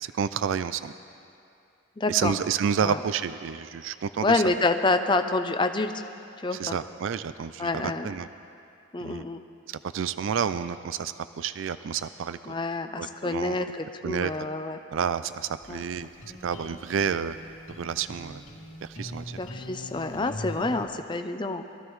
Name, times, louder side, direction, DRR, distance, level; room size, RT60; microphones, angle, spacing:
voice 1, 0.0-0.9 2.1-4.4 6.5-8.3 9.0-9.3 9.7-12.5 13.0-13.7 14.0-14.3 14.9-16.1 16.4-17.4 17.8-18.4 18.8-19.4 20.1-20.3, right 7 dB, 70° right, 13 dB, 0.4 m, -30 dB
voice 2, 2.0-2.3 2.8-3.0 4.2-5.9 6.4-6.8 7.6-8.1 8.9-9.4 12.5-14.8 15.7-15.8 19.4-21.6, left 2 dB, 25° left, 7 dB, 0.5 m, -27 dB
sound 1, 15.6-20.8, left 1 dB, 70° left, 2.9 m, -42 dB
22.0 x 14.5 x 3.2 m, 2.5 s
head